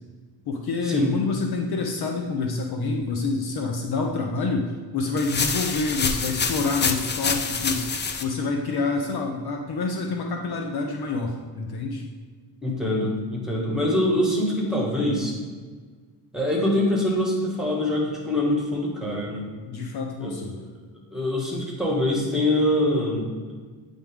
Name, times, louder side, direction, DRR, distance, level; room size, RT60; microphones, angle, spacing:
voice 1, 0.5-7.9 8.2-12.1 19.6-20.6, left 3 dB, 55° left, 2 dB, 0.8 m, -27 dB
sound 1, 5.2-8.2, left 5 dB, 25° left, 0.5 m, -26 dB
voice 2, 12.6-15.4 16.3-19.5 20.2-20.4 21.1-23.2, left 1 dB, ahead, -2 dB, 2.0 m, -24 dB
8.9 x 3.6 x 3.6 m, 1.5 s
cardioid pair, 90°, 46 cm